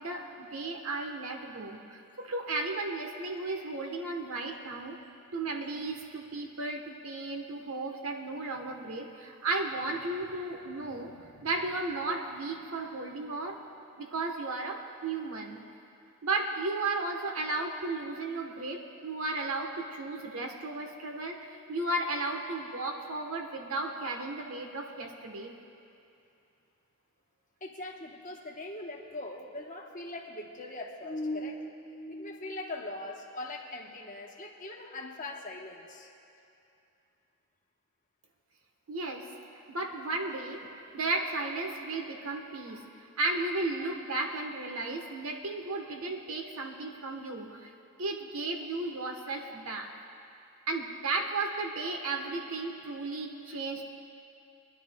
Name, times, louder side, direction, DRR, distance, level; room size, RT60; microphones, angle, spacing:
voice 1, 0.0-5.0 5.3-13.6 14.0-15.6 16.2-25.5 38.9-39.3 39.5-42.9 43.2-47.7 48.0-49.9 50.7-53.8, right 2 dB, 75° right, 3 dB, 1.2 m, -34 dB
voice 2, 27.6-36.1, left 1 dB, 35° left, 0 dB, 1.1 m, -40 dB
25.5 x 11.0 x 2.3 m, 2.7 s
head